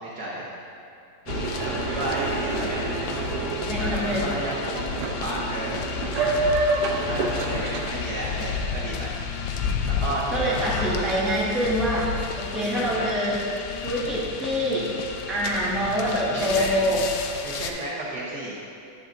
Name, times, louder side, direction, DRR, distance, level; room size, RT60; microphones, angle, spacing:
voice 1, 0.0-0.5 1.6-2.8 3.7-4.8 5.0-5.9 7.0-9.1 10.0-11.1 16.3-16.7 17.4-18.6, right 1 dB, 55° right, -6 dB, 1.3 m, -32 dB
sound 1, 1.3-17.7, left 6 dB, 90° left, 0.9 m, -32 dB
Boat Water vehicle, 1.3-7.9, right 3 dB, 80° right, 0.9 m, -28 dB
voice 2, 3.7-4.2 6.1-6.5 10.3-13.4 13.8-14.9 15.3-17.0, equal, ahead, -7 dB, 1.0 m, -25 dB
9.9 x 7.7 x 2.6 m, 2.8 s
omnidirectional pair, 2.4 m